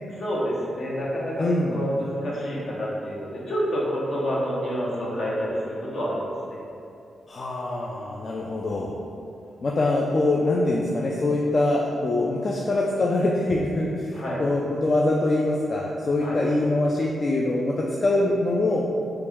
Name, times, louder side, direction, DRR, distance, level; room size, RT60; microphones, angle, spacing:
voice 1, 0.1-6.2 6.5-6.6 14.1-14.4 16.2-16.4, equal, 70° left, -5 dB, 0.9 m, -28 dB
voice 2, 1.4-1.8 7.3-8.9 9.6-18.8, left 2 dB, 50° left, -2 dB, 0.3 m, -24 dB
3.2 x 2.9 x 3.5 m, 2.6 s
supercardioid pair, 50°, 0 cm